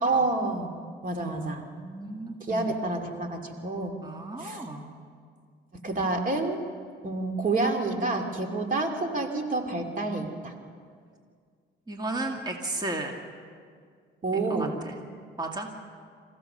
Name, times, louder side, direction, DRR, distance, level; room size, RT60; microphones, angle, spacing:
voice 1, 0.0-0.7 1.0-1.6 2.4-3.9 4.4-4.6 5.8-6.6 7.0-10.5 14.2-14.8, right 3 dB, 40° right, 4 dB, 2.4 m, -28 dB
voice 2, 1.7-2.7 4.0-4.9 11.9-13.2 14.3-15.0 15.4-15.7, right 2 dB, 20° right, 2 dB, 2.2 m, -34 dB
27.5 x 16.0 x 6.8 m, 2.1 s
cardioid pair, 90°, 20 cm